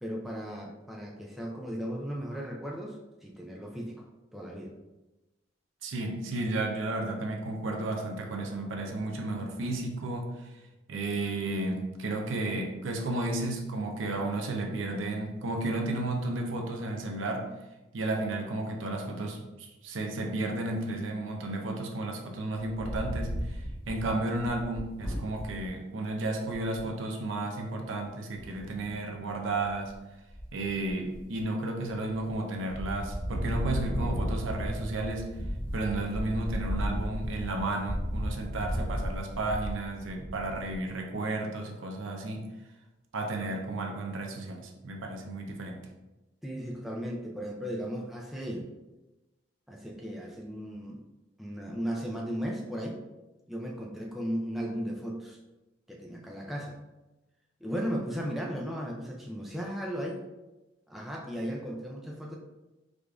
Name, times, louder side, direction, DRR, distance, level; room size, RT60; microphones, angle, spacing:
voice 1, 0.0-4.1 4.3-4.8 46.4-48.7 49.7-51.0 51.4-53.0 53.5-55.4 55.9-56.8 57.6-60.2 60.9-62.4, equal, ahead, -2 dB, 0.3 m, -36 dB
voice 2, 5.8-10.5 10.9-17.5 17.9-29.9 30.5-35.3 35.7-42.5 43.1-45.8, right 2 dB, 80° right, 1 dB, 0.6 m, -33 dB
Wind, 22.6-25.7 26.2-26.3 26.5-26.9 28.3-28.9 29.5-30.0 30.3-31.4 31.9-32.4 32.7-40.9, equal, 65° left, 1.5 m, -34 dB
4.8 x 2.4 x 2.4 m, 1.0 s
head